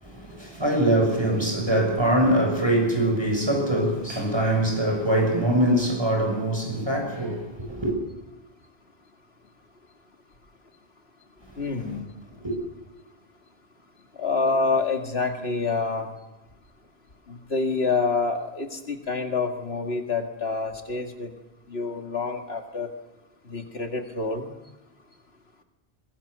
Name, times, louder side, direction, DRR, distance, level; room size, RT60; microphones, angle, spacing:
voice 1, 0.0-7.9 12.4-12.5, right 1 dB, 25° right, 7.2 m, -23 dB
voice 2, 11.6-12.1 14.2-16.1 17.3-21.3 21.7-22.9 23.5-24.5, left 4 dB, 80° left, 2.4 m, -27 dB
22.5 x 21.5 x 6.9 m
omnidirectional pair, 1.0 m